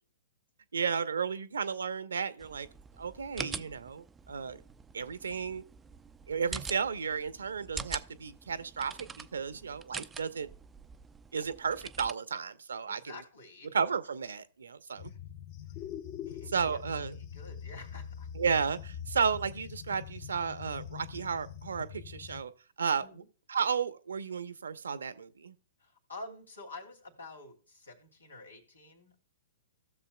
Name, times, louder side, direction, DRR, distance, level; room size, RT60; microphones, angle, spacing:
voice 1, 0.7-2.7 3.0-4.6 4.9-5.6 6.3-10.5 11.3-13.1 13.7-15.1 16.5-17.1 18.3-22.5 22.8-23.0 23.5-25.5, right 6 dB, 75° right, 0.7 m, -33 dB
sound 1, 2.4-12.1, right 5 dB, 15° right, 0.4 m, -45 dB
voice 2, 12.9-13.7 15.0-15.2 16.2-18.3 23.0-23.3 25.8-29.2, left 2 dB, 85° left, 2.7 m, -49 dB
sound 2, 15.0-22.4, left 9 dB, 40° left, 0.8 m, -44 dB
15.5 x 6.9 x 2.2 m
figure-of-eight pair, 115°, 0 cm